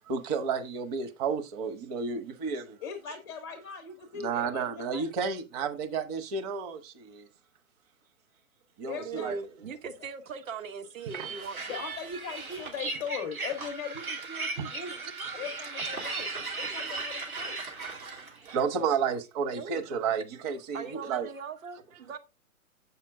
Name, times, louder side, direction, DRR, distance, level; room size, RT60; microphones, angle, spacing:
voice 1, 0.1-2.8 4.1-7.3 8.8-9.4 11.1-11.3 14.5-14.7 15.8-16.8 17.8-21.3, right 6 dB, 30° right, 0.9 m, -32 dB
voice 2, 2.8-5.1 8.9-9.3 11.7-15.0 15.3-17.7, left 6 dB, 5° left, 0.4 m, -39 dB
voice 3, 8.9-11.8 19.6-19.9 20.7-22.2, right 5 dB, 65° right, 1.3 m, -40 dB
sound 1, 11.1-18.6, right 3 dB, 80° right, 3.1 m, -37 dB
7.5 x 5.9 x 3.6 m
figure-of-eight pair, 130°, 42 cm